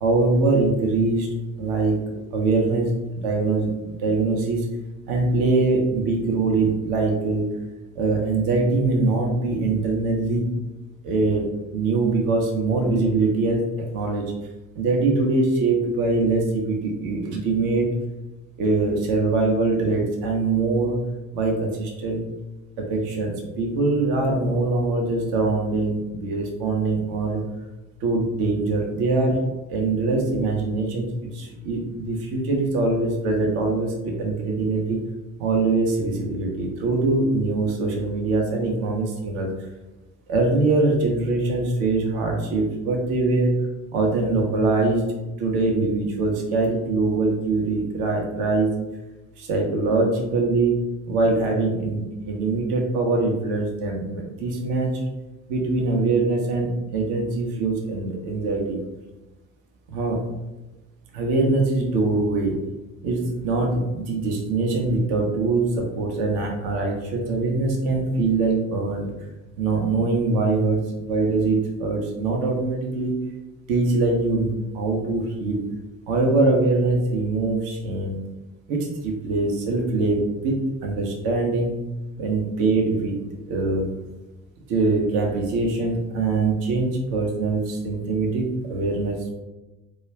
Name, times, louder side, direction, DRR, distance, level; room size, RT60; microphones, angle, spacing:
voice 1, 0.0-1.3 1.6-2.0 2.3-2.9 3.2-4.6 5.1-7.4 8.0-10.5 11.0-14.3 14.8-17.9 18.6-21.0 21.3-22.2 22.8-27.4 28.0-29.4 29.7-31.1 31.3-35.0 35.4-39.5 40.3-43.5 43.9-48.7 49.4-55.0 55.5-58.8 59.9-60.2 61.1-62.6 63.0-69.1 69.6-70.8 71.1-73.1 73.7-75.6 76.1-78.2 78.7-81.7 82.2-83.2 83.5-83.9 84.7-89.3, right 3 dB, 60° right, 0 dB, 0.6 m, -23 dB
2.3 x 2.3 x 3.1 m, 1.1 s
figure-of-eight pair, 50°, 41 cm